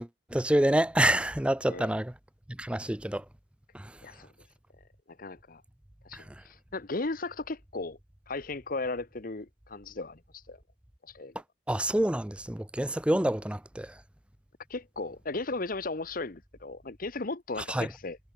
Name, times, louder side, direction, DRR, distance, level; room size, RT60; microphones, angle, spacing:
voice 1, 0.0-2.1 2.5-3.2 3.7-3.9 6.1-6.2 11.7-13.9 17.7-17.9, right 1 dB, 5° right, 0.5 m, -27 dB
voice 2, 4.0-4.3 5.1-5.6 6.0-8.0 8.3-10.2 10.5-10.6 11.1-11.3 14.7-18.2, left 3 dB, 50° left, 1.0 m, -36 dB
head